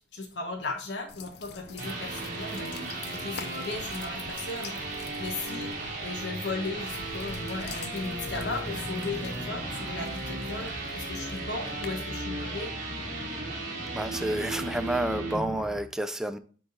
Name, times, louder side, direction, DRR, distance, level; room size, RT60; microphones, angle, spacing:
voice 1, 0.0-2.8 3.1-4.7 5.2-5.7 6.0-10.7 10.9-12.7, left 3 dB, 85° left, 1.2 m, -36 dB
sound 1, 1.1-11.9, left 5 dB, 65° left, 0.6 m, -46 dB
sound 2, 1.5-15.4, right 2 dB, 50° right, 1.6 m, -36 dB
sound 3, 7.9-15.8, equal, 20° left, 0.7 m, -42 dB
voice 2, 13.9-16.4, right 1 dB, 5° right, 0.4 m, -30 dB
7.9 x 3.8 x 3.8 m
head